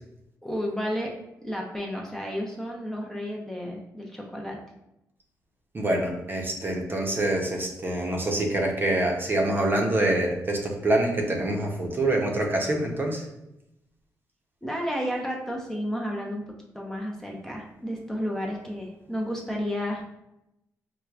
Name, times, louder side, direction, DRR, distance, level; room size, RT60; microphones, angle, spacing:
voice 1, 0.4-1.1 1.4-4.6 14.6-16.4 16.7-20.0, equal, 5° left, -1 dB, 0.6 m, -32 dB
voice 2, 5.7-13.3, right 1 dB, 35° right, 0 dB, 0.7 m, -25 dB
4.5 x 2.2 x 2.4 m, 0.88 s
cardioid pair, 75°, 6 cm